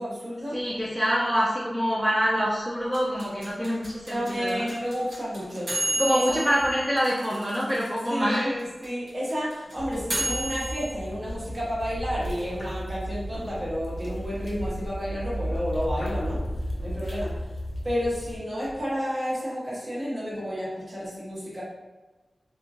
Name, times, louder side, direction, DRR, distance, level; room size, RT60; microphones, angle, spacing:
voice 1, 0.0-0.6 4.0-6.4 8.1-16.4 16.8-17.3 17.8-21.6, equal, 45° right, -8 dB, 1.1 m, -31 dB
voice 2, 0.5-4.7 6.0-8.6, equal, 5° right, -5 dB, 0.4 m, -25 dB
sound 1, 2.9-8.1 8.3-8.4 8.6-10.9, right 1 dB, 90° right, 1.2 m, -31 dB
sound 2, 9.8-18.4, equal, 75° left, 0.6 m, -34 dB
2.9 x 2.5 x 2.4 m, 1.2 s
wide cardioid pair, 80°, 0 cm